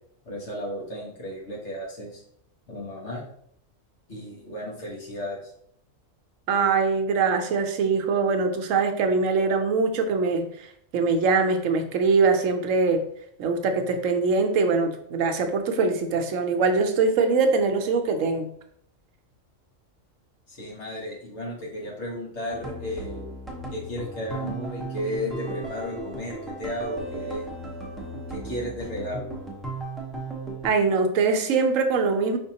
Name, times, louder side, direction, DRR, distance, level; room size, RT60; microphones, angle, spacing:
voice 1, 0.2-2.2 2.7-3.2 4.1-5.5 20.5-23.3 23.7-27.4 28.3-29.3, left 1 dB, 60° left, -3 dB, 1.5 m, -34 dB
voice 2, 6.5-10.7 10.9-13.0 13.4-18.5 30.6-32.4, right 4 dB, 75° right, 6 dB, 1.0 m, -23 dB
sound 1, 22.5-30.7, right 2 dB, ahead, 0.7 m, -35 dB
5.1 x 3.7 x 2.8 m, 0.68 s
omnidirectional pair, 1.4 m